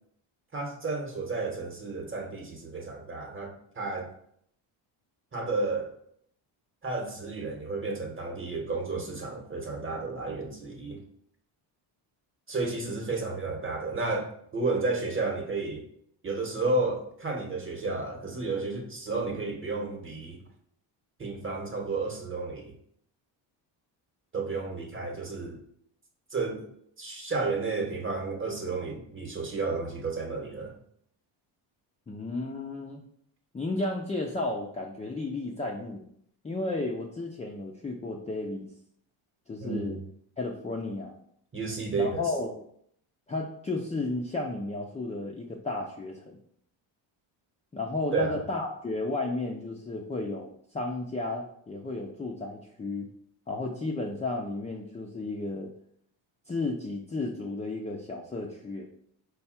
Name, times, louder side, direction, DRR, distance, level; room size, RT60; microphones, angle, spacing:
voice 1, 0.5-4.1 5.3-5.9 6.8-11.0 12.5-15.8 16.2-20.4 21.2-22.7 24.3-25.6 26.3-26.7 27.0-30.7 39.6-40.0 41.5-42.3 48.1-48.4, right 3 dB, 25° right, 2 dB, 1.0 m, -32 dB
voice 2, 32.1-33.0 33.5-36.0 36.4-38.7 39.5-40.0 40.4-41.2 42.0-42.5 43.3-46.4 47.7-53.1 53.5-55.7 56.5-58.9, left 2 dB, 15° left, -1 dB, 0.4 m, -33 dB
4.7 x 2.3 x 4.2 m, 0.67 s
cardioid pair, 95°, 49 cm